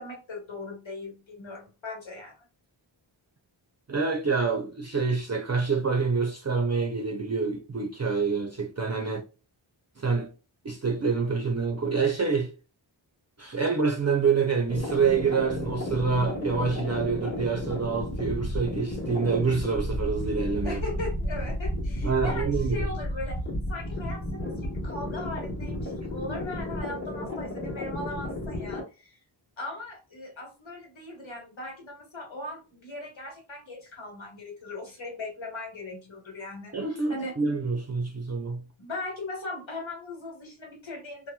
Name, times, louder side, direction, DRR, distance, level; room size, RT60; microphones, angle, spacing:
voice 1, 0.0-2.5 20.6-23.4 23.7-29.2 29.6-36.8 37.1-37.4 38.8-41.3, left 2 dB, 80° left, 1.3 m, -39 dB
voice 2, 3.9-9.2 10.0-10.3 10.6-12.5 13.4-20.8 22.0-22.9 36.7-38.6, right 5 dB, 35° right, 0.5 m, -27 dB
sound 1, 14.7-28.8, left 1 dB, 25° left, 1.0 m, -33 dB
2.9 x 2.1 x 2.2 m
wide cardioid pair, 80°, 46 cm